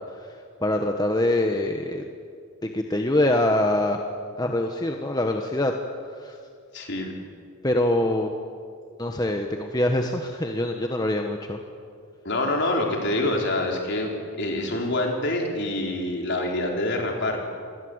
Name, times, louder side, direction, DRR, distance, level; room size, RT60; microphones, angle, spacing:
voice 1, 0.6-2.0 2.6-4.0 4.4-5.7 6.2-6.4 7.6-8.3 9.0-11.6, left 1 dB, 20° left, 3 dB, 1.3 m, -24 dB
voice 2, 6.7-7.1 12.2-17.4, left 1 dB, 50° left, 1 dB, 4.3 m, -26 dB
28.0 x 21.5 x 8.1 m, 2.2 s
head